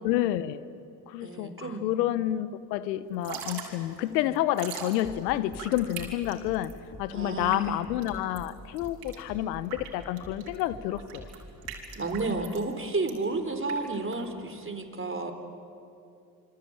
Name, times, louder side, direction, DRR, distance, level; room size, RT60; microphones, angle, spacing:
voice 1, 0.0-0.7 1.1-6.7 7.0-11.3, left 13 dB, 85° left, 16 dB, 1.0 m, -29 dB
voice 2, 1.2-1.9 7.1-7.8 12.0-15.3, right 3 dB, 25° right, 7 dB, 4.0 m, -31 dB
Drip / Trickle dribble, 3.1-14.7, right 8 dB, 75° right, 4.5 m, -43 dB
sound 1, 5.0-10.0 10.2-12.5, equal, 20° left, 4.3 m, -47 dB
27.5 x 24.5 x 8.9 m, 2.6 s
hypercardioid pair, 55°, 49 cm